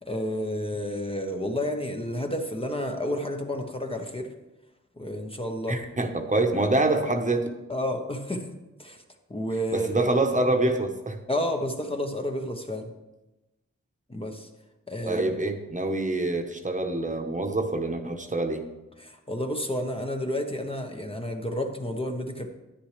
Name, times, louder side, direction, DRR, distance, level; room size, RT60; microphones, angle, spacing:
voice 1, 0.0-4.3 5.0-5.8 7.7-8.5 8.8-9.0 9.3-10.1 11.3-12.9 14.1-14.5 14.9-15.3 19.0-22.5, left 1 dB, 20° left, 3 dB, 0.9 m, -30 dB
voice 2, 5.7-7.5 9.7-11.2 15.1-18.6, right 2 dB, 25° right, 4 dB, 1.0 m, -26 dB
10.0 x 9.6 x 3.3 m, 1.0 s
cardioid pair, 70°, 29 cm